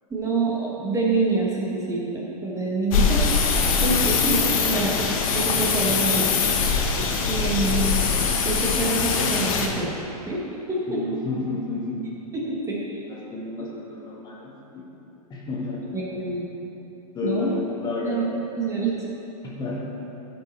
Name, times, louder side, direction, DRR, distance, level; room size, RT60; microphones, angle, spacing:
voice 1, 0.1-3.5 3.8-4.9 5.3-6.4 7.3-7.9 8.4-9.9 10.3-10.4 10.7-11.0 12.3-13.0 15.9-16.5 17.2-17.5 18.0-18.2 18.6-18.9, right 3 dB, 15° right, -4 dB, 1.3 m, -26 dB
sound 1, 2.9-9.7, left 5 dB, 60° left, 1.1 m, -22 dB
voice 2, 10.9-12.1 13.0-14.8 15.3-15.9 17.1-18.4 19.4-19.8, left 3 dB, 20° left, -3 dB, 1.3 m, -31 dB
11.0 x 5.3 x 4.3 m, 3.0 s
hypercardioid pair, 135°, 20 cm